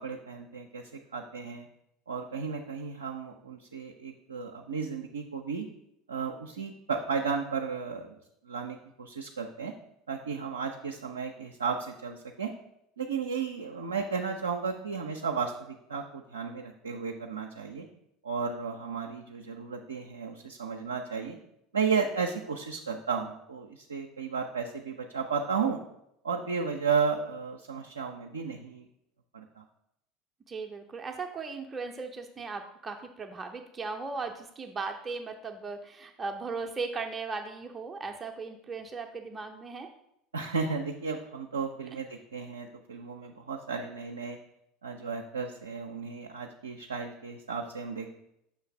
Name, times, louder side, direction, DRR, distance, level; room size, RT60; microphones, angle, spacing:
voice 1, 0.0-1.7 2.1-5.7 6.1-8.2 8.4-9.7 10.1-12.5 13.0-17.9 18.2-21.4 21.7-25.8 26.2-28.9 29.3-29.6 40.3-44.4 44.8-48.1, right 5 dB, 80° right, 2 dB, 0.4 m, -33 dB
voice 2, 30.5-39.9, right 4 dB, 25° right, 4 dB, 0.5 m, -37 dB
6.0 x 3.2 x 5.7 m, 0.80 s
figure-of-eight pair, 70°, 0 cm